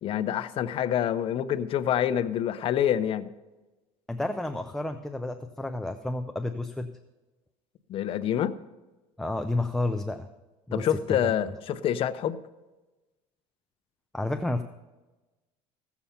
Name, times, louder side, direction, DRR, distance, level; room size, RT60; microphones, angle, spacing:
voice 1, 0.0-3.3 7.9-8.6 10.7-12.4, left 10 dB, 45° left, 0.7 m, -27 dB
voice 2, 4.1-6.9 9.2-10.3 10.7-10.9 14.1-14.6, left 2 dB, 5° left, 0.5 m, -30 dB
16.0 x 7.0 x 5.7 m
cardioid pair, 125°, 13 cm